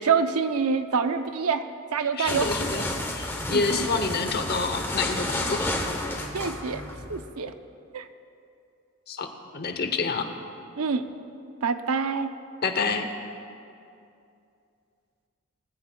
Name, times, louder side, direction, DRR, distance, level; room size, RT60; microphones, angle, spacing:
voice 1, 0.0-1.7 1.9-2.5 3.5-3.9 6.3-6.8 7.1-7.5 7.9-8.1 10.8-11.1 11.6-12.3, right 5 dB, 85° right, 9 dB, 0.6 m, -26 dB
voice 2, 2.2-5.7 9.1-9.3 9.5-10.3 12.6-13.1, left 4 dB, 45° left, 7 dB, 0.8 m, -28 dB
sound 1, 2.3-7.2, left 1 dB, 10° left, 0.8 m, -31 dB
19.5 x 15.0 x 2.3 m, 2.5 s
head